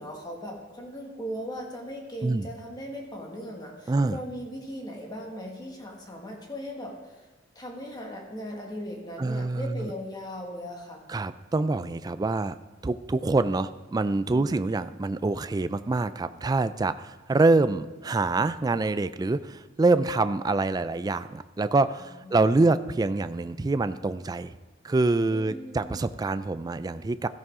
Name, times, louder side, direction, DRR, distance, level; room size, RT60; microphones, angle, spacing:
voice 1, 0.0-7.3 7.6-11.0 14.3-14.6 22.2-22.7 25.3-26.0, equal, 20° left, -1 dB, 1.9 m, -38 dB
voice 2, 3.9-4.2 9.2-9.9 11.1-12.6 12.8-24.6 24.8-27.3, right 3 dB, 20° right, 12 dB, 0.3 m, -25 dB
14.0 x 10.5 x 3.7 m, 1.2 s
head